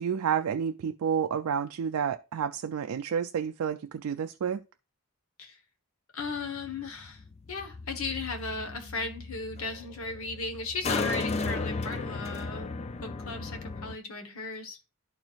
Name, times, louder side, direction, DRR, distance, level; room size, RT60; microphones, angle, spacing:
voice 1, 0.0-4.6, right 7 dB, 75° right, 0.3 m, -30 dB
voice 2, 6.1-12.7 13.0-14.8, left 3 dB, 70° left, 1.3 m, -36 dB
sound 1, 6.2-14.0, left 3 dB, 30° left, 0.3 m, -35 dB
11.5 x 4.5 x 2.5 m
head